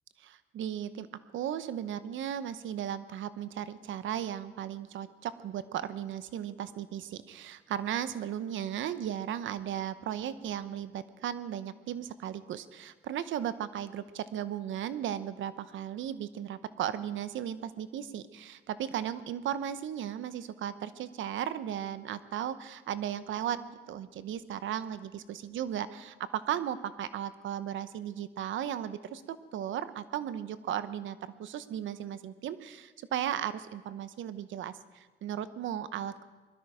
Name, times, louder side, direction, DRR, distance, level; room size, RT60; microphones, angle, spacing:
voice 1, 0.2-1.1 1.3-36.2, right 10 dB, 75° right, 13 dB, 0.9 m, -36 dB
21.0 x 12.5 x 5.0 m, 1.3 s
cardioid pair, 90°, 20 cm